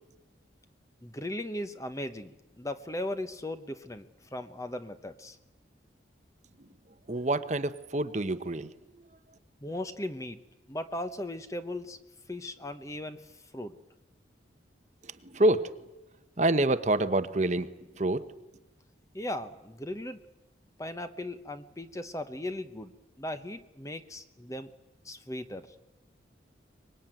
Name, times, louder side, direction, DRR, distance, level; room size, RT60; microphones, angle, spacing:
voice 1, 1.0-5.4 9.6-10.4 10.7-12.0 12.3-13.7 19.1-20.2 20.8-24.7 25.0-25.7, left 1 dB, 15° left, 10 dB, 1.0 m, -38 dB
voice 2, 7.1-8.7 15.2-15.7 16.4-17.7 18.0-18.2, right 1 dB, 40° right, 11 dB, 0.9 m, -26 dB
24.5 x 20.5 x 9.0 m, 0.97 s
head